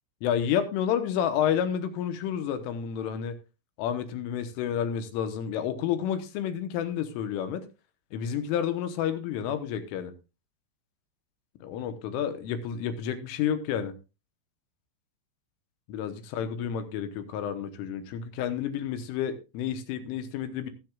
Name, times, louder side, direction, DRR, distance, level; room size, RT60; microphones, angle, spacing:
voice 1, 0.2-3.4 3.8-7.6 8.1-10.1 11.6-13.9 15.9-20.7, left 9 dB, 80° left, 9 dB, 3.5 m, -30 dB
20.0 x 7.7 x 2.4 m, 0.28 s
omnidirectional pair, 5.7 m